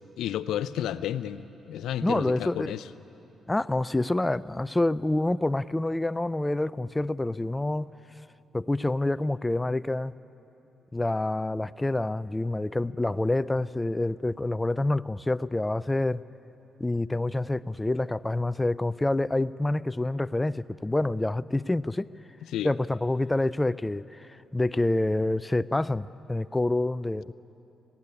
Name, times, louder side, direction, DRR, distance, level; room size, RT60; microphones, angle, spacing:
voice 1, 0.2-2.9 22.5-22.7, left 11 dB, 85° left, 14 dB, 0.5 m, -32 dB
voice 2, 2.0-2.7 3.5-7.9 8.5-10.1 10.9-16.2 16.8-22.1 22.6-27.3, left 2 dB, 15° left, 17 dB, 0.4 m, -27 dB
19.0 x 16.5 x 9.8 m, 3.0 s
cardioid pair, 70°, 0 cm